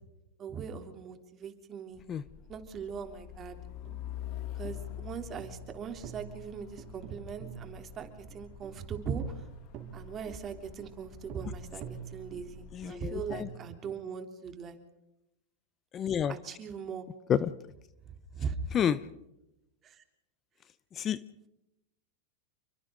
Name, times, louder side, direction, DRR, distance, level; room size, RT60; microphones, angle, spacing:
voice 1, 0.4-2.0 2.5-3.5 4.5-9.4 9.9-14.8 16.3-17.0 18.3-18.6 19.8-20.0, right 6 dB, 30° right, 6 dB, 3.3 m, -40 dB
Truck, 2.1-13.5, left 10 dB, 45° left, 1.5 m, -46 dB
sound 1, 3.8-13.9, right 8 dB, 45° right, 4.4 m, -48 dB
voice 2, 12.7-13.5 15.9-16.3 17.3-17.5 18.7-19.0 20.9-21.2, left 9 dB, 25° left, 16 dB, 0.8 m, -29 dB
29.5 x 24.0 x 3.9 m, 0.89 s
supercardioid pair, 135°, 0 cm